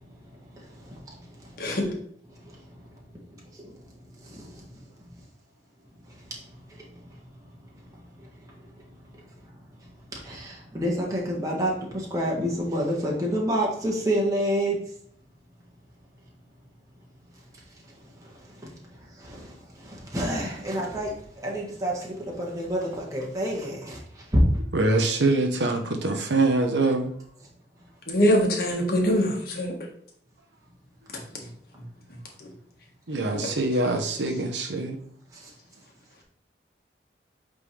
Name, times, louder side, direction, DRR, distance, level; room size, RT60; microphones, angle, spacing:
voice 1, 0.0-1.8 2.3-2.9 3.3-3.9 4.2-4.8 6.1-6.8 7.9-8.9 9.3-9.4 9.8-14.8 17.8-18.7 19.2-21.2 21.4-24.4 35.3-35.5, equal, 20° right, 1.4 m, -30 dB
voice 2, 24.7-27.1 33.1-35.0, right 2 dB, 80° right, 0.9 m, -24 dB
voice 3, 28.1-29.7, equal, 55° left, 1.7 m, -23 dB
8.4 x 3.8 x 3.3 m
head